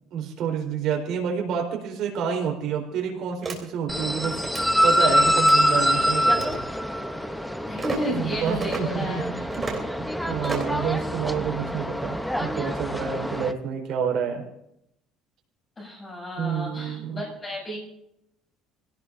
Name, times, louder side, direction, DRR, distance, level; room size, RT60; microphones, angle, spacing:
voice 1, 0.1-4.4 4.8-6.6 8.1-9.7 10.0-14.4 16.4-17.2, right 7 dB, 55° right, 1 dB, 4.2 m, -29 dB
sound 1, 3.4-3.6 4.4-4.7 5.4-5.6 6.3-6.6 7.8-8.0 8.6-8.8 9.5-9.8 10.4-10.8, right 4 dB, 20° right, 3.4 m, -32 dB
sound 2, 3.9-13.5, equal, ahead, 0.8 m, -25 dB
voice 2, 7.7-9.4 10.7-10.9 15.8-17.8, equal, 20° left, -2 dB, 7.5 m, -32 dB
26.0 x 17.5 x 2.7 m, 0.80 s
cardioid pair, 165°, 0 cm